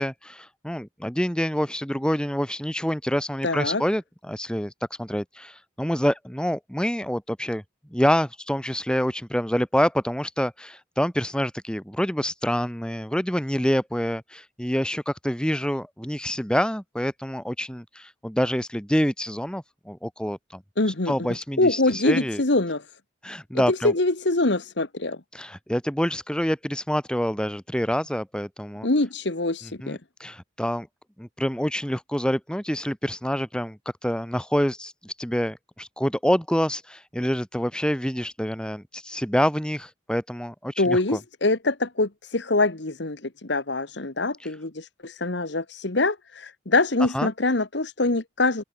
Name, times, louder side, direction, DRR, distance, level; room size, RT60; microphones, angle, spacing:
voice 1, 0.0-7.6 7.9-20.6 20.9-22.4 23.2-23.9 25.3-28.9 29.8-30.9 31.2-41.2 44.4-44.5 47.1-47.3, equal, 5° left, 2.4 m, -27 dB
voice 2, 3.4-3.8 20.8-21.1 21.6-22.8 23.5-25.2 28.8-30.0 40.8-48.6, left 2 dB, 60° left, 1.5 m, -24 dB
open air
head